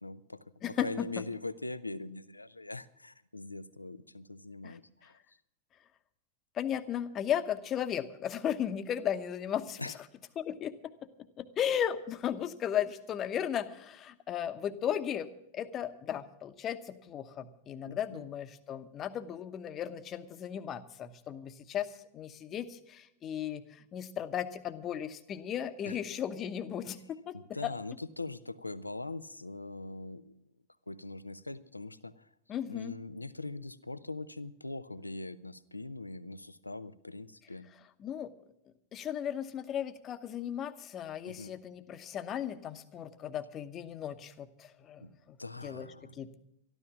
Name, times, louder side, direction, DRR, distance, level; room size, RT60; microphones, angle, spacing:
voice 1, 0.0-5.2 9.8-10.0 17.9-18.3 25.8-26.0 27.3-30.3 30.9-32.3 32.7-37.7 41.3-41.6 45.0-45.1 45.4-46.2, left 2 dB, 85° left, 15 dB, 0.6 m, -42 dB
voice 2, 0.6-1.2 4.6-4.8 6.5-9.9 10.4-10.9 11.4-15.3 15.5-27.4 27.6-27.7 32.5-32.9 38.0-38.3 38.9-45.4 45.6-45.9 46.1-46.4, left 9 dB, 30° left, 11 dB, 0.9 m, -36 dB
13.0 x 12.5 x 6.1 m, 0.77 s
figure-of-eight pair, 90°, 0 cm